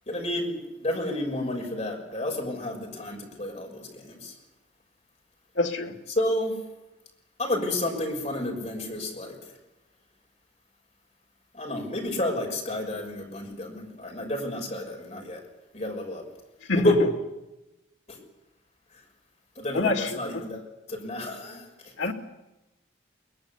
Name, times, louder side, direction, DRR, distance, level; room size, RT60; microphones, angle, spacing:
voice 1, 0.1-4.3 6.1-6.6 7.4-9.4 11.5-15.4 15.7-16.2 16.7-17.0 18.1-18.2 19.6-21.7, left 1 dB, 35° left, 2 dB, 6.0 m, -30 dB
voice 2, 5.6-6.0 16.7-16.9 19.7-20.4 22.0-22.1, left 2 dB, 80° left, 5 dB, 2.3 m, -26 dB
22.5 x 20.5 x 8.3 m, 0.98 s
head